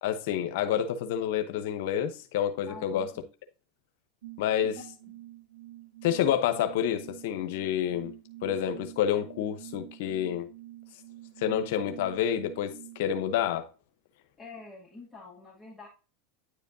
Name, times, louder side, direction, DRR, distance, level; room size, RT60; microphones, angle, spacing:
voice 1, 0.0-3.1 4.4-4.8 6.0-8.1 8.4-10.5 11.4-13.7, left 10 dB, 70° left, 0.9 m, -28 dB
voice 2, 2.7-3.3 5.1-5.2 14.4-15.9, left 3 dB, 10° left, 2.2 m, -47 dB
sound 1, 4.2-13.1, right 16 dB, 80° right, 0.6 m, -47 dB
9.8 x 5.0 x 2.7 m
hypercardioid pair, 110°, 0 cm